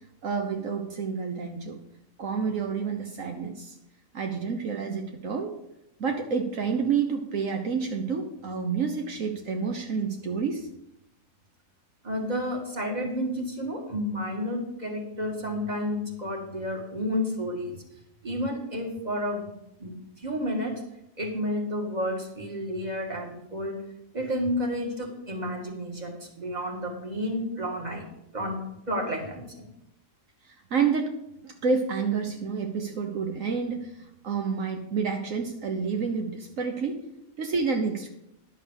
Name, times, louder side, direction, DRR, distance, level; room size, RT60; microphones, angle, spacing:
voice 1, 0.2-1.8 2.2-3.7 4.1-5.5 6.0-10.7 30.4-31.2 31.4-37.0 37.4-38.1, right 5 dB, 75° right, 4 dB, 1.4 m, -29 dB
voice 2, 12.0-17.8 18.2-20.8 21.2-23.8 24.1-28.1 28.3-28.6 28.9-29.7, equal, 30° right, 1 dB, 2.2 m, -31 dB
11.0 x 7.2 x 6.4 m, 0.82 s
omnidirectional pair, 1.4 m